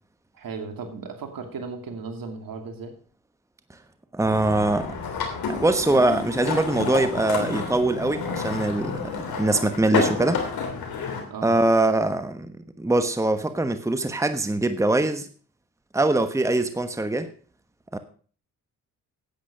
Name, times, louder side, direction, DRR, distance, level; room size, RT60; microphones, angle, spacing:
voice 1, 0.3-2.9 11.3-11.6, right 4 dB, 65° right, 5 dB, 2.5 m, -36 dB
voice 2, 4.1-4.9 5.5-10.4 11.4-12.5 12.8-15.3 15.9-17.3 17.9-18.0, right 2 dB, 10° right, 9 dB, 1.2 m, -23 dB
sound 1, 4.2-11.2, left 5 dB, 70° left, 3.1 m, -30 dB
10.5 x 8.6 x 5.2 m, 0.42 s
supercardioid pair, 55°, 37 cm